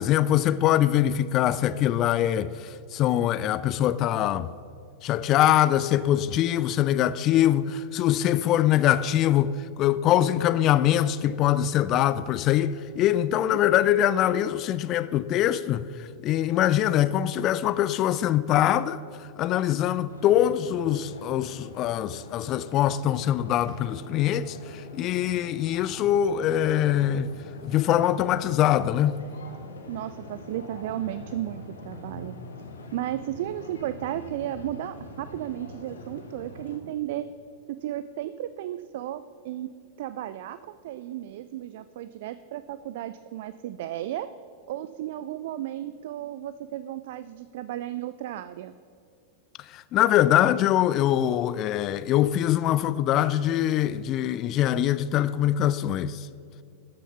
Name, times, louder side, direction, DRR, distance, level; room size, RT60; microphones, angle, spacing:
voice 1, 0.0-4.5 5.0-27.3 27.6-29.2 49.6-56.3, left 12 dB, 35° left, 0.3 m, -23 dB
voice 2, 13.1-13.6 29.9-32.4 32.9-37.3 37.7-39.7 40.0-44.3 44.7-48.7, right 13 dB, 55° right, 0.3 m, -34 dB
sound 1, 20.1-36.8, left 2 dB, 70° left, 1.4 m, -43 dB
13.5 x 6.7 x 5.7 m
figure-of-eight pair, 90°, 0 cm